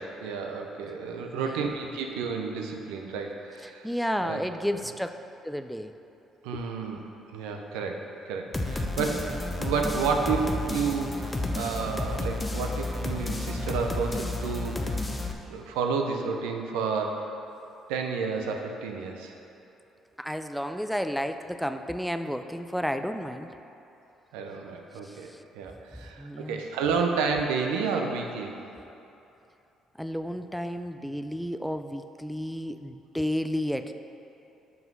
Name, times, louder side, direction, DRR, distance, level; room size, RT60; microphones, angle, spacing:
voice 1, 0.0-3.9 4.2-4.4 6.4-7.0 7.3-15.0 15.5-17.2 17.9-19.3 24.3-25.3 25.5-28.6, right 5 dB, 85° right, 3 dB, 0.6 m, -31 dB
voice 2, 1.4-1.7 3.6-5.2 5.4-5.9 6.5-6.6 20.2-23.5 25.0-25.4 26.2-26.6 30.0-33.9, equal, ahead, 9 dB, 0.3 m, -32 dB
sound 1, 8.5-15.3, left 2 dB, 20° left, 0.7 m, -31 dB
5.7 x 5.5 x 5.3 m, 2.9 s
supercardioid pair, 70°, 0 cm